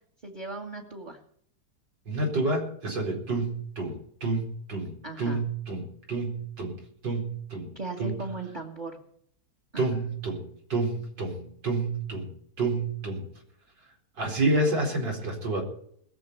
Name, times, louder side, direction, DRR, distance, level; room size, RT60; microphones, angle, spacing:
voice 1, 0.2-1.2 5.0-5.4 7.7-9.0 9.7-10.0, right 3 dB, 25° right, 3 dB, 1.8 m, -37 dB
voice 2, 2.1-6.8 7.0-7.7 8.0-8.1 9.8-13.2 14.2-15.6, right 2 dB, 80° right, 1 dB, 5.1 m, -29 dB
21.0 x 7.2 x 7.0 m, 0.64 s
omnidirectional pair, 1.9 m